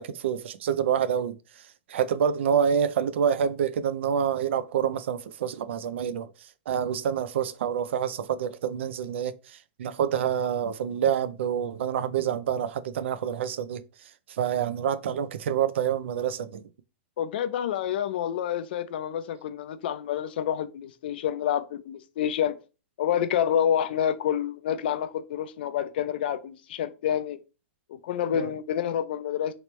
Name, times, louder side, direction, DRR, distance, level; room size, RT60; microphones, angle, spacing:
voice 1, 0.0-1.4 1.9-6.3 6.7-9.3 9.8-13.8 14.4-16.6 28.3-28.5, right 8 dB, 65° right, 0.4 m, -27 dB
voice 2, 17.2-22.6 23.0-27.4 27.9-29.5, left 9 dB, 50° left, 0.4 m, -28 dB
3.2 x 3.0 x 3.0 m
supercardioid pair, 175°, 7 cm